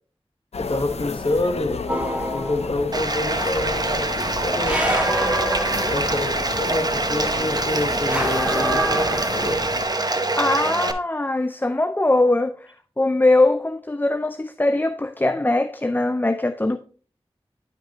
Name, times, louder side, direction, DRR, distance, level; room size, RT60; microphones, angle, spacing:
sound 1, 0.5-9.9, left 4 dB, 90° left, 0.5 m, -32 dB
voice 1, 0.6-1.8 2.3-4.8 5.7-9.7, left 2 dB, 55° left, 1.3 m, -27 dB
sound 2, 1.9-2.9 4.7-6.4 8.1-9.8, right 1 dB, 10° right, 1.5 m, -26 dB
Bathtub (filling or washing), 2.9-10.9, right 2 dB, 40° right, 0.8 m, -25 dB
voice 2, 10.3-16.8, left 2 dB, 20° left, 0.4 m, -21 dB
10.5 x 5.2 x 2.9 m
wide cardioid pair, 45°, 10 cm